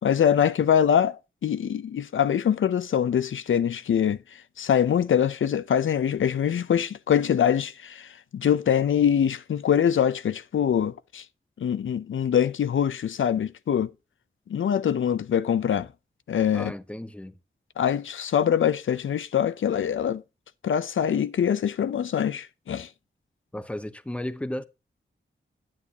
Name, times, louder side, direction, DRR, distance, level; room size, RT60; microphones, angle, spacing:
voice 1, 0.0-11.2 11.6-13.9 14.5-15.9 16.3-16.7 17.8-20.2 20.6-22.9, left 8 dB, 85° left, 0.5 m, -24 dB
voice 2, 16.5-17.4 23.5-24.6, left 1 dB, 5° left, 0.7 m, -34 dB
10.0 x 9.6 x 2.8 m
wide cardioid pair, 125°, 20 cm